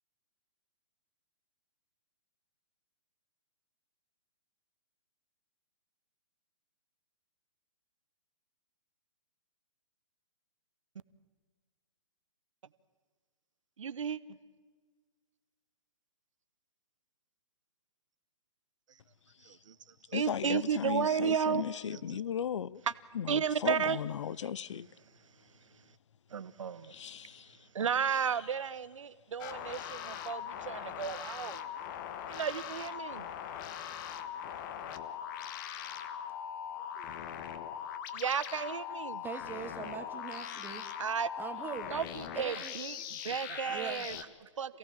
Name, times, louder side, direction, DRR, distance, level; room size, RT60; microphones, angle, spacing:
voice 1, 13.8-14.2 19.5-19.7 20.1-22.2 22.9-23.0 23.3-24.0 26.3-26.9 27.7-31.6 32.3-33.3 38.1-39.2 41.0-41.3 41.9-44.8, right 7 dB, 75° right, 1.0 m, -33 dB
voice 2, 20.1-22.8 23.1-24.9 26.9-27.5, left 8 dB, 65° left, 0.7 m, -36 dB
sound 1, 29.4-44.2, left 9 dB, 40° left, 1.3 m, -41 dB
voice 3, 39.1-40.8 41.4-41.9 42.3-43.0 43.7-44.1, right 6 dB, 10° right, 1.3 m, -42 dB
27.5 x 17.0 x 7.5 m
hypercardioid pair, 135°, 16 cm